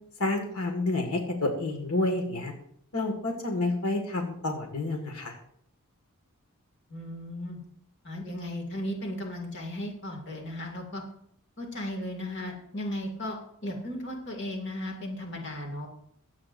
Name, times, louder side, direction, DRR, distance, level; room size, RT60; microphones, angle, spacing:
voice 1, 0.2-2.5 2.9-5.4, left 2 dB, 90° left, 3 dB, 1.9 m, -29 dB
voice 2, 6.9-7.6 8.0-11.0 11.6-15.9, left 1 dB, 55° left, 2 dB, 2.4 m, -36 dB
21.5 x 8.5 x 2.6 m, 0.69 s
head